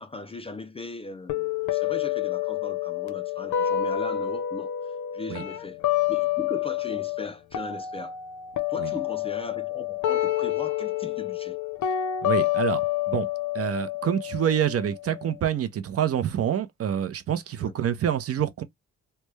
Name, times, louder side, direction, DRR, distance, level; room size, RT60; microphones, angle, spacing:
voice 1, 0.0-5.8 6.1-8.2 8.7-11.6 17.6-17.7, left 3 dB, 20° left, 0.3 m, -38 dB
sound 1, 1.3-7.3 7.5-15.3, left 12 dB, 80° left, 0.8 m, -28 dB
voice 2, 12.2-12.8 13.1-13.3 13.5-18.6, right 9 dB, 50° right, 0.6 m, -26 dB
3.3 x 2.1 x 3.1 m
cardioid pair, 150°, 30 cm